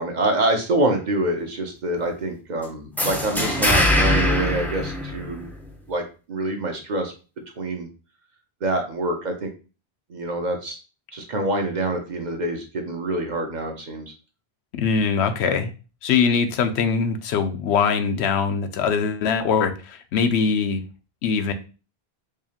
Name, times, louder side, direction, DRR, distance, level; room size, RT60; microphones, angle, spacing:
voice 1, 0.0-5.5 5.9-7.1 7.6-7.9 8.6-9.5 10.1-10.8 11.1-14.1, right 1 dB, 50° right, 4 dB, 0.8 m, -26 dB
sound 1, 3.0-5.7, left 1 dB, 5° left, 0.3 m, -22 dB
voice 2, 14.7-15.7 16.0-20.8 21.2-21.5, left 6 dB, 90° left, 8 dB, 0.9 m, -22 dB
4.9 x 2.4 x 2.8 m, 0.33 s
omnidirectional pair, 1.1 m